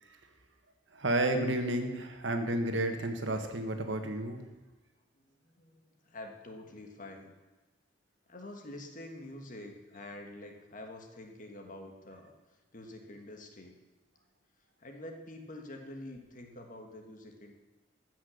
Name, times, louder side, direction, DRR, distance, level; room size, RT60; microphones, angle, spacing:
voice 1, 0.9-4.4, right 1 dB, 85° right, 6 dB, 1.4 m, -31 dB
voice 2, 5.2-7.3 8.3-12.3 12.7-13.8 14.8-17.5, left 1 dB, 45° left, 3 dB, 1.6 m, -47 dB
15.0 x 6.1 x 6.4 m, 1.2 s
head